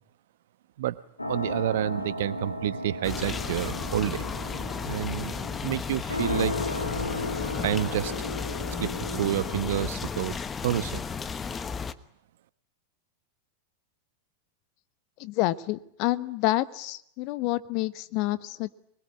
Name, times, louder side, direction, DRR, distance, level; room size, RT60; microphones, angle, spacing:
sound 1, 1.2-9.8, left 1 dB, 85° left, 2.5 m, -35 dB
voice 1, 1.3-4.3 4.8-5.3 5.6-6.5 7.6-8.1 8.7-10.4 10.6-11.0, right 12 dB, 55° right, 15 dB, 1.1 m, -29 dB
sound 2, 3.0-11.9, left 5 dB, 20° left, 1.1 m, -34 dB
voice 2, 15.2-18.7, left 17 dB, 45° left, 15 dB, 1.1 m, -28 dB
24.5 x 21.5 x 9.9 m, 0.73 s
figure-of-eight pair, 90°, 0 cm